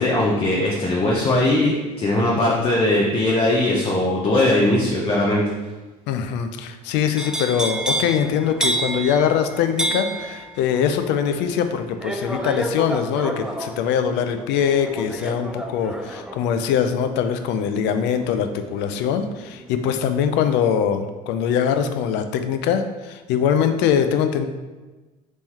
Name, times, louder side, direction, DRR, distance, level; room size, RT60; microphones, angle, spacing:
voice 1, 0.0-5.4, left 1 dB, 30° left, -3 dB, 0.8 m, -20 dB
voice 2, 6.1-24.4, left 8 dB, 65° left, 9 dB, 0.5 m, -22 dB
sound 1, 7.2-19.1 19.5-19.9, right 1 dB, 5° right, 0.3 m, -30 dB
3.5 x 3.1 x 4.2 m, 1.2 s
supercardioid pair, 80°, 19 cm